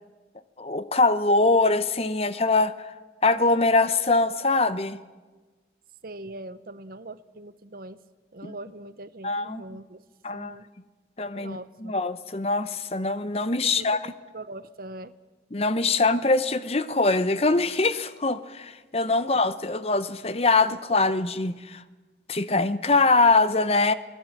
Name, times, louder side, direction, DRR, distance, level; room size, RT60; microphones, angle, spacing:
voice 1, 0.6-2.9 3.2-5.0 8.4-8.5 9.2-9.6 10.2-10.6 11.2-14.1 15.5-21.8 22.3-23.9, left 3 dB, 30° left, 13 dB, 0.8 m, -23 dB
voice 2, 6.0-8.0 8.3-10.0 10.3-10.7 11.3-11.9 13.6-15.1, right 2 dB, 50° right, 14 dB, 0.8 m, -41 dB
24.0 x 18.5 x 7.4 m, 1.3 s
head